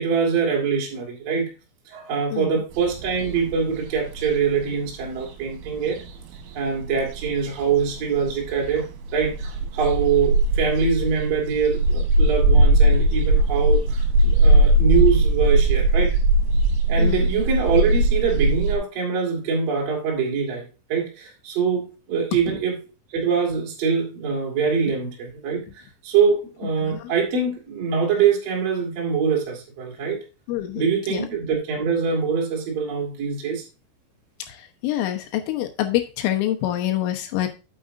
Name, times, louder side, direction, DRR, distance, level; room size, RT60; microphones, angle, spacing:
voice 1, 0.0-1.5 1.9-6.0 6.5-16.1 16.9-22.8 23.1-30.2 30.7-33.6, right 6 dB, 50° right, -1 dB, 2.0 m, -24 dB
voice 2, 2.3-2.6 17.0-17.4 22.5-22.6 26.8-27.1 30.5-31.3 34.5-37.5, left 13 dB, 80° left, 6 dB, 3.5 m, -26 dB
sound 1, 2.7-18.8, right 1 dB, 70° right, 3.4 m, -20 dB
8.9 x 7.7 x 2.6 m, 0.31 s
omnidirectional pair, 5.9 m